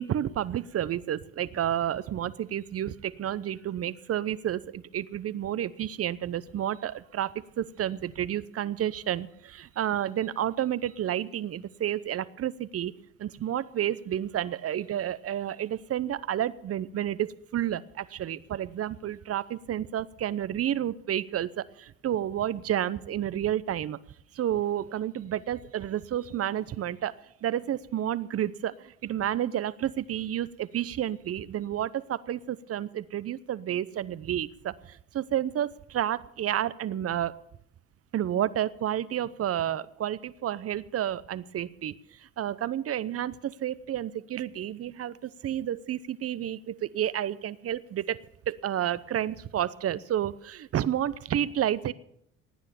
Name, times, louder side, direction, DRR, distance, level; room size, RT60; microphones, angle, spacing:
voice 1, 0.0-12.9 13.2-24.0 24.3-27.1 27.4-37.4 38.1-42.0 42.4-48.2 48.5-51.9, right 11 dB, 45° right, 18 dB, 0.8 m, -30 dB
17.5 x 9.7 x 7.0 m, 0.73 s
hypercardioid pair, 60°, 33 cm